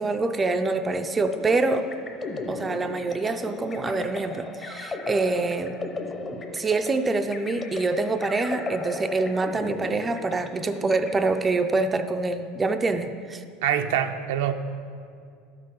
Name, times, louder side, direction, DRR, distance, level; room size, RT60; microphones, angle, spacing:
voice 1, 0.0-1.9 2.5-5.7 6.3-13.4, right 3 dB, 15° right, 7 dB, 0.4 m, -25 dB
sound 1, 1.3-11.8, left 3 dB, 20° left, 0.8 m, -36 dB
voice 2, 13.6-14.5, right 9 dB, 80° right, 7 dB, 0.6 m, -24 dB
12.0 x 6.5 x 5.4 m, 2.3 s
supercardioid pair, 140°, 0 cm